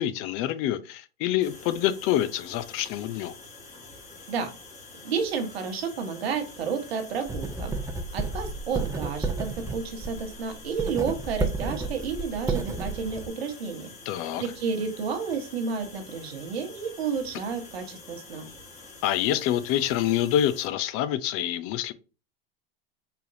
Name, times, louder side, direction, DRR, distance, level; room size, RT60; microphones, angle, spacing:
voice 1, 0.0-3.3 14.1-14.4 19.0-21.9, left 11 dB, 45° left, 0.5 m, -26 dB
sound 1, 1.4-20.7, left 3 dB, 20° left, 1.7 m, -47 dB
voice 2, 5.0-7.7 8.1-13.9 14.1-18.5, right 5 dB, 80° right, 1.2 m, -31 dB
Writing, 7.3-13.3, right 3 dB, 10° right, 0.6 m, -32 dB
4.4 x 3.4 x 2.6 m
hypercardioid pair, 95°, 31 cm